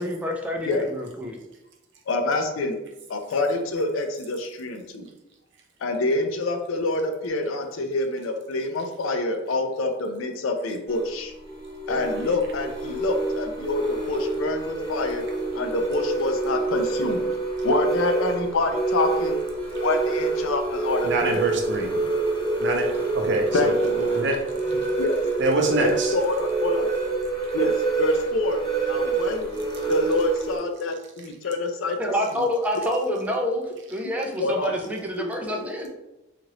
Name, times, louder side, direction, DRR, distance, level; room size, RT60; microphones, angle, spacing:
voice 1, 0.0-1.4 32.0-35.9, equal, 5° right, 0 dB, 0.4 m, -27 dB
voice 2, 2.1-2.8 3.1-5.1 5.8-11.3 11.9-15.2 15.5-17.2 17.6-19.4 19.8-21.4 21.9-22.1 23.5-23.9 25.0-25.2 25.7-26.9 27.5-27.7 28.0-29.6 29.9-32.0 32.4-32.5 34.4-34.7 35.2-35.3 35.5-35.6, left 2 dB, 85° left, 6 dB, 0.4 m, -26 dB
sound 1, 10.9-30.6, right 3 dB, 30° left, 0.9 m, -27 dB
voice 3, 21.0-21.9 22.6-22.9 23.1-23.7 24.0-24.4 24.6-24.8 25.4-26.1, right 2 dB, 65° right, 1 dB, 0.6 m, -25 dB
2.8 x 2.5 x 3.0 m, 0.94 s
head